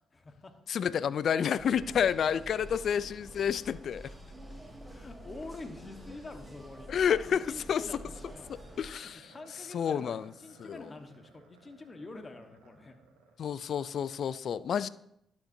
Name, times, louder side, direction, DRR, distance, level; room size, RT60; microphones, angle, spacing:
voice 1, 0.1-0.5 2.3-2.6 4.9-8.5 9.3-13.0, left 2 dB, 35° left, 6 dB, 1.3 m, -46 dB
voice 2, 0.7-4.1 6.9-7.4 7.7-7.8 8.8-9.2 9.7-10.3 10.6-10.8 13.4-14.9, left 8 dB, 60° left, 18 dB, 0.3 m, -29 dB
sound 1, 1.6-8.9, right 1 dB, 15° right, 2.7 m, -48 dB
sound 2, 7.3-13.7, right 4 dB, 90° right, 1.1 m, -59 dB
11.5 x 6.4 x 2.7 m, 0.76 s
hypercardioid pair, 50°, 0 cm